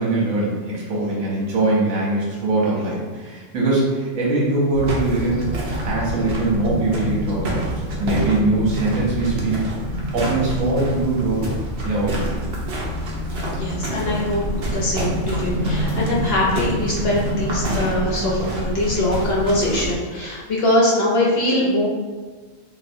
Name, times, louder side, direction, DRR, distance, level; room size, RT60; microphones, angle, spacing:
voice 1, 0.0-5.5 5.8-7.7 8.0-11.5 11.8-12.4, right 2 dB, 75° right, -5 dB, 1.3 m, -22 dB
sound 1, 4.7-19.9, equal, 60° right, 0.8 m, -26 dB
voice 2, 13.5-14.4 14.7-21.9, left 1 dB, 60° left, -4 dB, 0.7 m, -22 dB
3.9 x 2.2 x 2.6 m, 1.4 s
omnidirectional pair, 1.4 m